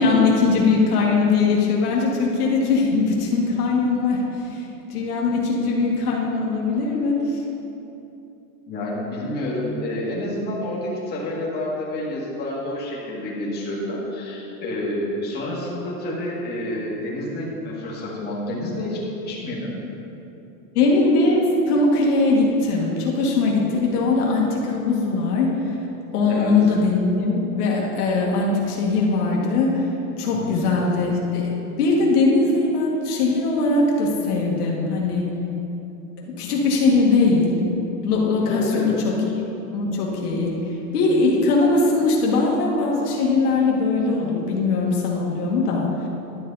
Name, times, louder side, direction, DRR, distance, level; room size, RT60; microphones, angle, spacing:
voice 1, 0.0-7.4 20.8-25.5 26.1-29.9 30.2-35.3 36.2-37.6 38.0-39.1 39.7-40.6 40.9-46.1, left 3 dB, 80° left, -2 dB, 1.9 m, -20 dB
voice 2, 8.7-19.7 26.3-26.5 30.3-30.7 38.4-38.9, left 1 dB, 20° left, -6 dB, 1.9 m, -29 dB
11.5 x 6.8 x 4.1 m, 3.0 s
supercardioid pair, 145°, 45 cm